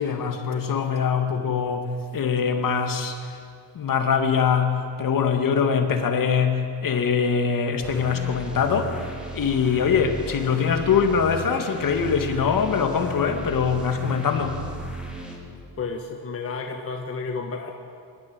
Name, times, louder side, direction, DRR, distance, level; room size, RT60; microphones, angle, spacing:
voice 1, 0.0-3.4 3.7-14.6, left 6 dB, 50° left, 5 dB, 2.2 m, -23 dB
sound 1, 7.8-15.4, right 1 dB, ahead, 4.0 m, -36 dB
voice 2, 15.8-17.7, left 4 dB, 35° left, 2 dB, 1.5 m, -31 dB
25.0 x 12.5 x 9.0 m, 2.3 s
cardioid pair, 125°, 41 cm